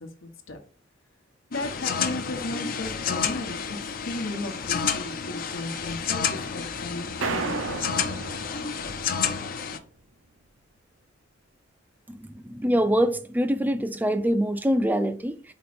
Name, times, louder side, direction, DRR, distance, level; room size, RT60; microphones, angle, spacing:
voice 1, 0.0-0.6 1.5-8.0, left 2 dB, 80° left, 1.1 m, -36 dB
sound 1, 1.5-9.8, left 6 dB, 45° left, 0.6 m, -30 dB
sound 2, 7.2-9.6, right 4 dB, 85° right, 0.7 m, -33 dB
voice 2, 12.1-15.5, equal, 10° right, 0.4 m, -24 dB
5.2 x 4.2 x 4.3 m
head